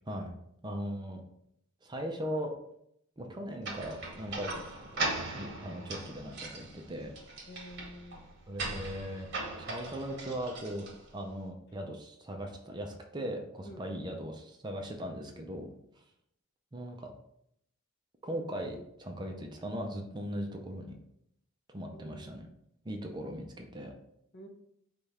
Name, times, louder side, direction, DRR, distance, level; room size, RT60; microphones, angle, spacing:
voice 1, 0.6-1.2 1.8-2.5 3.2-4.7 4.9-7.1 8.5-9.3 9.6-15.7 16.7-17.1 18.2-21.0 21.7-22.5 22.8-23.9, equal, 20° right, 3 dB, 0.5 m, -39 dB
sound 1, 3.6-11.3, right 2 dB, 55° right, 1.2 m, -39 dB
voice 2, 7.5-8.2 13.7-14.0 21.9-22.5 24.3-24.5, equal, 50° left, 4 dB, 0.6 m, -49 dB
4.9 x 2.3 x 4.1 m, 0.75 s
head